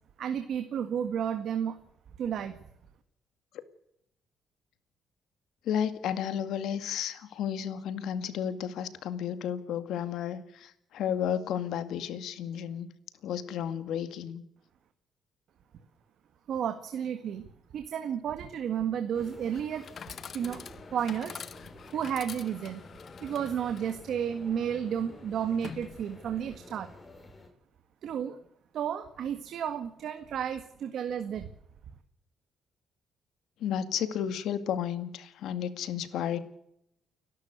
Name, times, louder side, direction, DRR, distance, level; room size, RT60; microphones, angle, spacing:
voice 1, 0.2-1.8 2.2-2.6 16.5-19.8 20.3-20.6 20.9-21.4 21.9-22.8 23.2-26.9 28.0-28.4 28.7-31.5, right 8 dB, 70° right, 8 dB, 1.7 m, -32 dB
voice 2, 5.6-12.9 13.2-14.4 33.6-36.4, left 9 dB, 80° left, 11 dB, 2.0 m, -32 dB
sound 1, 19.1-27.5, left 2 dB, 20° left, 7.0 m, -50 dB
Chatter / Coin (dropping), 19.4-26.4, left 7 dB, 55° left, 1.0 m, -47 dB
29.5 x 12.0 x 8.1 m, 0.77 s
cardioid pair, 90°, 0 cm